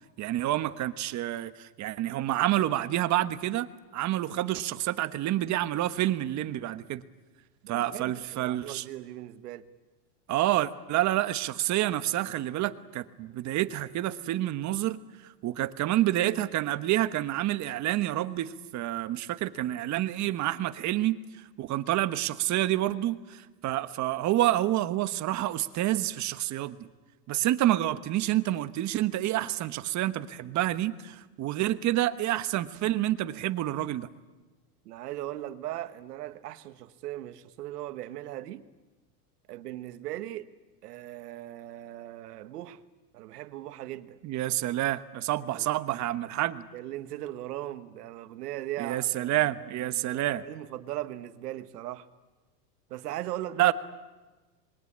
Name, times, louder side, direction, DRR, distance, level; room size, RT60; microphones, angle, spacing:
voice 1, 0.2-3.7 3.9-7.0 7.7-8.8 10.3-21.2 21.6-26.9 27.3-34.1 44.2-46.7 48.8-50.4 53.6-53.7, right 14 dB, 35° right, 1.3 m, -28 dB
voice 2, 7.6-9.7 34.8-38.6 39.5-40.5 40.8-42.8 43.1-44.2 45.5-45.7 46.7-52.1 52.9-53.7, right 14 dB, 80° right, 1.6 m, -39 dB
26.5 x 22.0 x 8.7 m
supercardioid pair, 125°, 47 cm